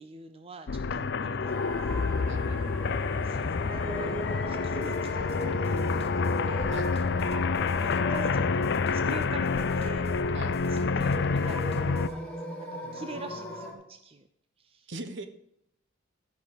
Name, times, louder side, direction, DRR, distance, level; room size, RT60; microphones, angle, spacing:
voice 1, 0.0-2.2 2.5-2.6 3.2-4.2 4.5-6.7 7.1-7.5 8.1-10.1 10.7-14.3 14.6-14.9, right 3 dB, 30° right, 8 dB, 0.6 m, -45 dB
sound 1, 0.7-12.1, left 4 dB, 55° left, 0.5 m, -28 dB
voice 2, 0.9-1.5 2.2-3.0 6.7-7.2 10.3-10.7 12.8-13.5 14.9-15.3, right 2 dB, 60° right, 9 dB, 1.1 m, -43 dB
sound 2, 1.5-13.7, equal, 5° left, 2.5 m, -38 dB
sound 3, 4.6-12.2, left 1 dB, 30° left, 1.1 m, -50 dB
13.0 x 5.8 x 6.9 m, 0.77 s
head